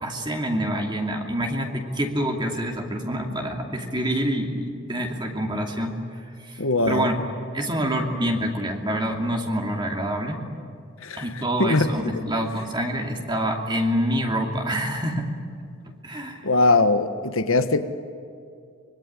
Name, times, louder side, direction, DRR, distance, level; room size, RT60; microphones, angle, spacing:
voice 1, 0.0-6.0 6.4-7.2 7.5-10.4 11.1-15.3 16.0-16.5, equal, 20° right, 2 dB, 2.6 m, -26 dB
voice 2, 6.6-7.1 11.0-11.2 11.6-12.2 16.4-17.8, left 2 dB, 70° left, 9 dB, 1.5 m, -21 dB
25.0 x 22.5 x 10.0 m, 2.4 s
head